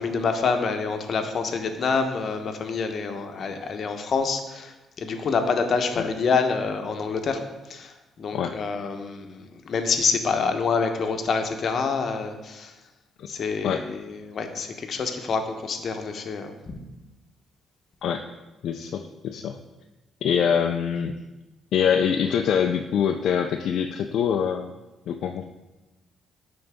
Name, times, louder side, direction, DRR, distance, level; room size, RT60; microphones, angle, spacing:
voice 1, 0.0-7.4 7.7-12.7 13.3-16.8, left 5 dB, 55° left, 6 dB, 0.8 m, -27 dB
voice 2, 18.6-19.6 20.2-21.2 21.7-24.7 25.1-25.4, left 7 dB, 75° left, 4 dB, 0.4 m, -24 dB
10.5 x 3.9 x 3.5 m, 1.1 s
cardioid pair, 90°, 0 cm